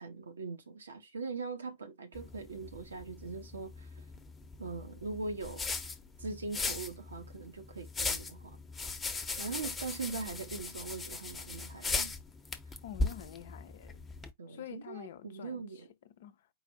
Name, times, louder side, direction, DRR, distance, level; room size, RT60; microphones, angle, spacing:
voice 1, 0.0-4.1 4.6-5.6 6.2-8.6 9.4-12.1 14.4-15.9, right 4 dB, 70° right, 0.8 m, -41 dB
sound 1, 2.1-14.3, left 3 dB, 15° left, 0.9 m, -39 dB
voice 2, 12.8-14.0 14.5-16.5, left 11 dB, 55° left, 0.6 m, -48 dB
4.8 x 2.5 x 4.0 m
figure-of-eight pair, 90°, 0 cm